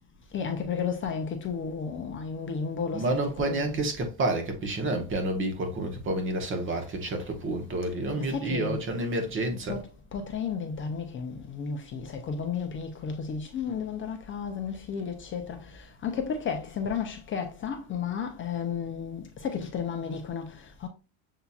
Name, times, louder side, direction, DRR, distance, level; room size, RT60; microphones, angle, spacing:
voice 1, 0.3-3.8 8.2-8.8 9.7-9.8 10.1-20.9, left 6 dB, 30° left, 0.5 m, -33 dB
voice 2, 2.9-9.8, right 2 dB, 30° right, 0.9 m, -29 dB
6.8 x 2.8 x 2.3 m
cardioid pair, 140°, 41 cm